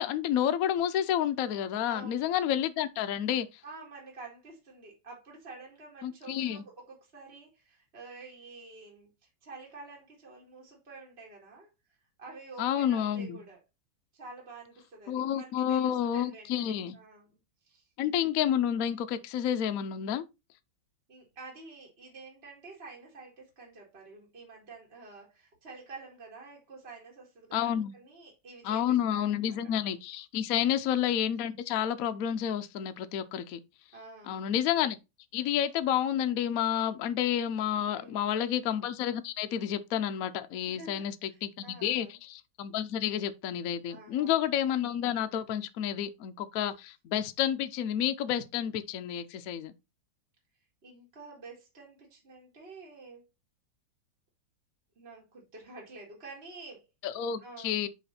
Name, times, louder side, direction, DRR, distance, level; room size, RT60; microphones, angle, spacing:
voice 1, 0.0-3.5 6.0-6.6 12.6-13.4 15.1-17.0 18.0-20.2 27.5-27.9 28.6-33.6 34.3-35.0 35.3-49.7 57.0-57.9, left 10 dB, 70° left, 0.8 m, -30 dB
voice 2, 1.8-2.3 3.6-11.7 12.2-13.6 14.1-17.3 17.6-17.9 21.1-29.7 30.5-30.7 33.9-34.5 37.9-38.5 40.7-42.2 43.9-44.3 50.8-53.3 55.0-56.9 57.4-57.8, right 3 dB, 30° right, 2.1 m, -49 dB
5.4 x 5.0 x 4.2 m
omnidirectional pair, 2.1 m